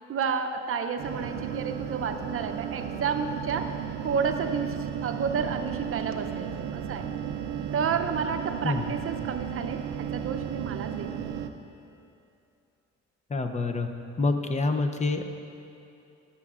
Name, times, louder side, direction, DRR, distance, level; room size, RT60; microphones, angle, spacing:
voice 1, 0.1-3.7 4.0-7.1 7.7-11.1, right 6 dB, 45° right, 7 dB, 0.6 m, -31 dB
sound 1, 1.0-11.5, right 9 dB, 85° right, 0.5 m, -34 dB
voice 2, 13.3-13.9 14.2-15.2, left 3 dB, 25° left, 6 dB, 0.6 m, -27 dB
14.0 x 7.0 x 2.5 m, 2.7 s
cardioid pair, 90°, 30 cm